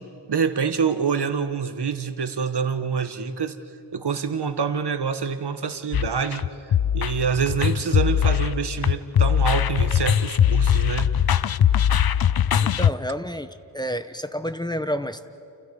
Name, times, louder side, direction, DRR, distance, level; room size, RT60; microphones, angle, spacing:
voice 1, 0.0-3.5 3.9-11.1 11.4-11.5, right 6 dB, 65° right, 9 dB, 1.5 m, -26 dB
sound 1, 5.9-12.9, left 9 dB, 60° left, 0.6 m, -21 dB
voice 2, 12.6-15.3, equal, 10° left, 10 dB, 1.0 m, -30 dB
29.5 x 29.5 x 5.4 m, 2.6 s
wide cardioid pair, 70°, 43 cm